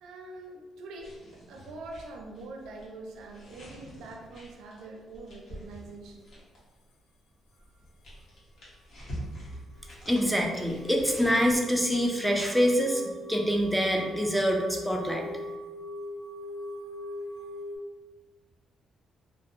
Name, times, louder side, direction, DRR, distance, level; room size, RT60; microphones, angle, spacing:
voice 1, 0.0-6.4, right 2 dB, 85° right, 1 dB, 0.4 m, -44 dB
sound 1, 1.0-6.7 7.6-11.6, equal, 60° left, 1.0 m, -46 dB
sound 2, 9.4-17.8, left 1 dB, 85° left, 0.4 m, -41 dB
voice 2, 10.1-13.0 13.3-15.2, equal, ahead, 0 dB, 0.4 m, -25 dB
2.6 x 2.0 x 2.4 m, 1.2 s
cardioid pair, 90°, 0 cm